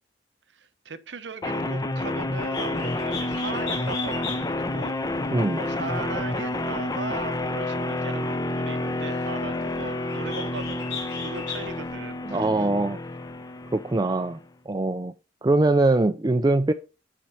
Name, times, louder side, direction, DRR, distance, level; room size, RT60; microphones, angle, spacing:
voice 1, 0.5-5.0 5.5-12.7, right 4 dB, 85° right, 0.9 m, -38 dB
sound 1, 1.4-14.4, left 2 dB, 20° left, 0.7 m, -29 dB
Bird, 2.3-11.9, left 5 dB, 75° left, 3.9 m, -39 dB
voice 2, 12.3-13.0 13.7-14.4 14.7-15.1 15.4-16.7, right 2 dB, 20° right, 0.4 m, -22 dB
10.0 x 4.6 x 5.5 m
head